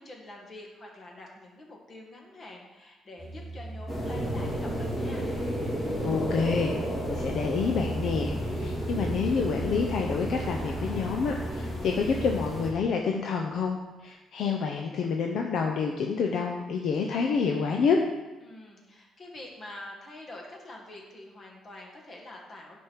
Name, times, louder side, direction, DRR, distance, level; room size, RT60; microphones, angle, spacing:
voice 1, 0.0-5.3 18.4-22.8, left 1 dB, 30° left, -1 dB, 1.7 m, -46 dB
sound 1, 3.2-12.6, right 2 dB, 10° right, 1.6 m, -39 dB
sound 2, 3.9-12.7, equal, 10° left, 2.0 m, -33 dB
voice 2, 6.0-6.7 7.1-18.0, left 5 dB, 55° left, 2 dB, 0.7 m, -28 dB
Thunder, 13.2-13.7, right 3 dB, 25° right, 0.8 m, -48 dB
9.8 x 5.3 x 4.6 m, 1.1 s
cardioid pair, 160°, 0 cm